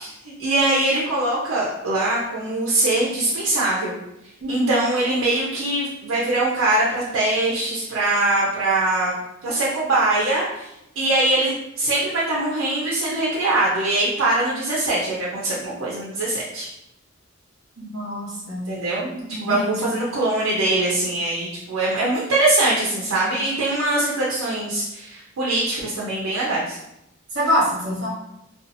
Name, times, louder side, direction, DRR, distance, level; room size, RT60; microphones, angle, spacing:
voice 1, 0.0-4.0 4.5-9.1 9.4-10.7 11.0-16.7 18.7-26.8, right 2 dB, 90° right, -6 dB, 0.6 m, -22 dB
voice 2, 4.4-4.8 17.8-18.6 19.3-19.9 27.3-28.1, equal, 55° right, -5 dB, 1.0 m, -25 dB
2.6 x 2.4 x 2.6 m, 0.85 s
head